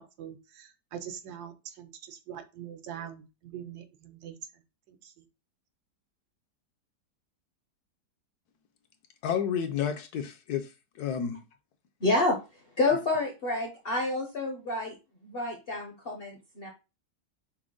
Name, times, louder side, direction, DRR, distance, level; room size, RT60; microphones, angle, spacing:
voice 1, 0.0-4.6 4.9-5.2, right 9 dB, 75° right, 1.1 m, -43 dB
voice 2, 9.2-10.7 11.0-11.4, left 8 dB, 70° left, 1.1 m, -30 dB
voice 3, 12.0-12.4 12.8-15.0 15.2-16.7, left 2 dB, 50° left, 0.7 m, -28 dB
6.0 x 2.1 x 3.7 m
omnidirectional pair, 1.9 m